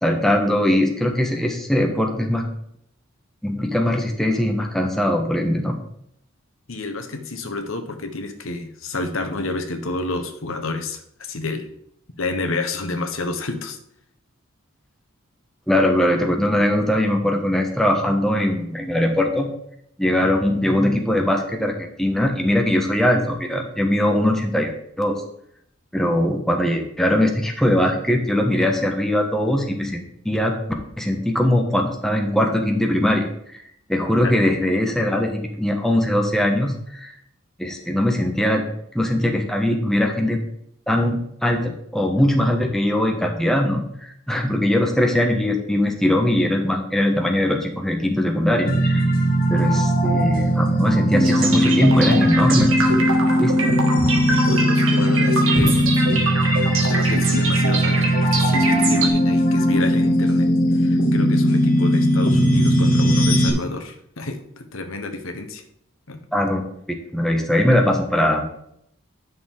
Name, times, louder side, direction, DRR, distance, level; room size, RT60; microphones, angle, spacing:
voice 1, 0.0-2.4 3.4-5.7 15.7-19.5 20.0-24.7 25.0-25.1 25.9-30.6 31.0-33.3 33.9-37.1 37.6-38.6 38.9-40.4 40.9-49.0 49.5-52.7 53.4-53.7 66.3-66.6 67.1-68.5, left 1 dB, ahead, 2 dB, 1.2 m, -21 dB
voice 2, 6.7-11.7 12.2-13.8 34.2-34.3 54.3-55.8 56.8-60.5 60.7-65.6 66.1-66.2, left 2 dB, 80° left, 6 dB, 1.2 m, -29 dB
sound 1, 48.7-63.5, equal, 45° left, 1.6 m, -18 dB
sound 2, 51.2-59.1, right 2 dB, 80° right, 1.8 m, -24 dB
9.9 x 6.5 x 3.7 m, 0.71 s
head